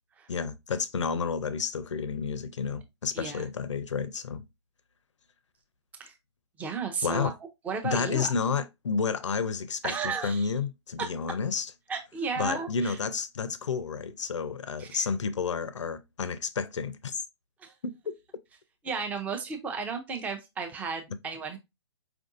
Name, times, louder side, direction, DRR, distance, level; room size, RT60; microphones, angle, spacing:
voice 1, 0.3-4.4 7.0-7.3 7.8-11.7 12.4-17.2, left 5 dB, 80° left, 0.5 m, -31 dB
voice 2, 3.1-3.5 6.0-6.1 6.6-7.3 7.6-8.3 9.8-10.5 11.9-13.0 14.8-15.1 17.6-17.7 18.8-21.6, right 5 dB, 10° right, 0.5 m, -34 dB
4.6 x 2.5 x 2.5 m
hypercardioid pair, 135°, 15 cm